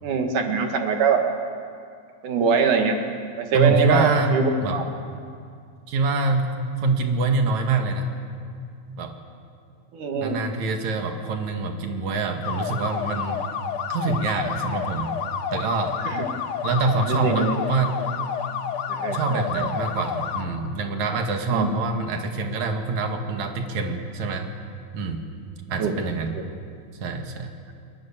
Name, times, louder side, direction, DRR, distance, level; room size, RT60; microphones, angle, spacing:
voice 1, 0.0-1.2 2.2-3.0 3.4-4.8 9.9-10.4 16.1-16.2 17.1-17.6 18.9-19.7 21.5-21.7 25.8-25.9 26.3-26.4, right 5 dB, 90° right, 4 dB, 3.5 m, -23 dB
voice 2, 3.5-4.8 5.9-8.1 8.9-9.1 10.1-13.4 13.9-15.1 15.5-16.0 16.6-18.1 19.1-24.5 24.9-25.2 25.7-26.4 27.0-27.5, right 3 dB, 70° right, 4 dB, 3.2 m, -25 dB
sound 1, 12.4-20.5, left 7 dB, 60° left, 1.6 m, -30 dB
29.0 x 21.0 x 7.3 m, 2.3 s
omnidirectional pair, 3.5 m